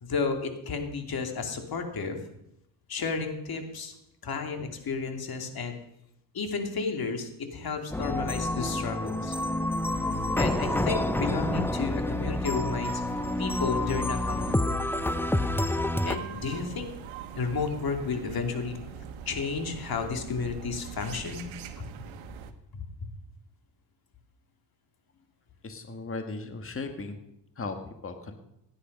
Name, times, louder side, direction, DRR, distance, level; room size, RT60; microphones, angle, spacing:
voice 1, 0.0-2.2 2.9-3.9 4.2-5.8 6.3-9.3 10.4-12.9 13.4-14.6 16.0-16.9 17.3-18.8 19.3-21.5 22.7-23.1, left 4 dB, 50° left, 4 dB, 2.9 m, -32 dB
sound 1, 7.9-16.2, left 1 dB, 5° left, 0.7 m, -28 dB
sound 2, 9.9-22.5, right 8 dB, 75° right, 1.4 m, -43 dB
voice 2, 25.6-27.2 27.6-27.8 28.0-28.3, left 3 dB, 25° left, 6 dB, 1.8 m, -36 dB
17.0 x 10.0 x 5.4 m, 0.82 s
cardioid pair, 85°, 47 cm